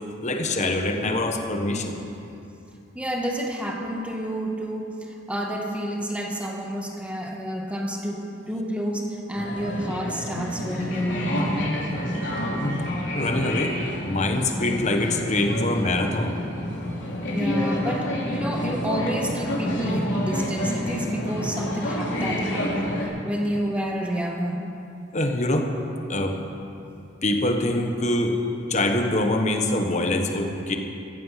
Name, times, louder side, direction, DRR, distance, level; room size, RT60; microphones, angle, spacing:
voice 1, 0.2-2.0 12.6-12.8 13.1-13.8 14.0-16.4 25.1-25.7 26.1-26.4 27.2-28.4 28.7-30.8, left 1 dB, 40° left, 4 dB, 1.4 m, -24 dB
voice 2, 2.9-5.0 5.3-11.2 17.3-24.6, equal, 5° right, 0 dB, 1.8 m, -29 dB
sound 1, 9.3-23.1, equal, 80° left, 3.2 m, -28 dB
15.0 x 14.5 x 5.9 m, 2.7 s
head